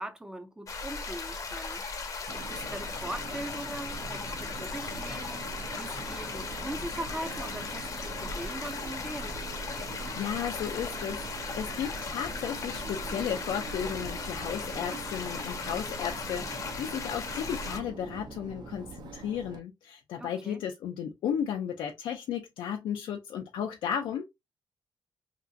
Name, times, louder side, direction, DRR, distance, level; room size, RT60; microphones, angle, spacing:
voice 1, 0.0-9.4 20.2-20.6, right 1 dB, 10° right, 0.4 m, -41 dB
sound 1, 0.7-17.8, left 4 dB, 45° left, 0.7 m, -37 dB
Subway metro underground, 2.3-19.6, right 4 dB, 60° right, 0.6 m, -44 dB
voice 2, 9.9-24.2, left 8 dB, 90° left, 0.4 m, -34 dB
2.9 x 2.4 x 2.5 m
cardioid pair, 120°, 8 cm